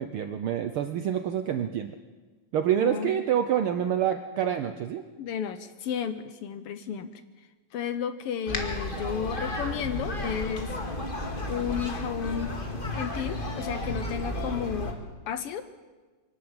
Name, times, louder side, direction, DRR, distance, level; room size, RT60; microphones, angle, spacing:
voice 1, 0.0-1.9 2.5-5.0, right 9 dB, 85° right, 9 dB, 1.2 m, -27 dB
voice 2, 5.2-7.2 7.7-10.7 11.5-12.5 12.9-14.9 15.3-15.6, left 8 dB, 70° left, 11 dB, 1.4 m, -32 dB
sound 1, 8.5-14.9, left 1 dB, 20° left, 1.7 m, -33 dB
24.5 x 12.5 x 8.9 m, 1.3 s
omnidirectional pair, 3.4 m